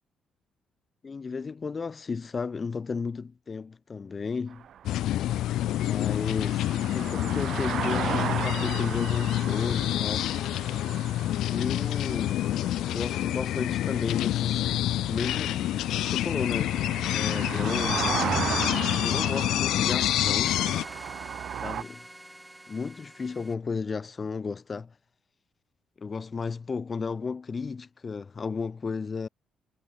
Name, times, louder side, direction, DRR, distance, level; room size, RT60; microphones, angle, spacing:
voice 1, 1.0-4.6 5.8-10.3 11.5-12.4 12.9-14.7 15.0-16.8 17.1-18.2 19.0-20.6 21.6-22.0 22.7-24.9 26.0-29.3, left 5 dB, 35° left, 0.5 m, -34 dB
sound 1, 4.5-21.8, right 9 dB, 65° right, 1.5 m, -36 dB
sound 2, 4.8-20.8, left 13 dB, 85° left, 0.5 m, -27 dB
sound 3, 20.5-23.5, right 1 dB, 5° right, 1.6 m, -45 dB
cardioid pair, 90°, 0 cm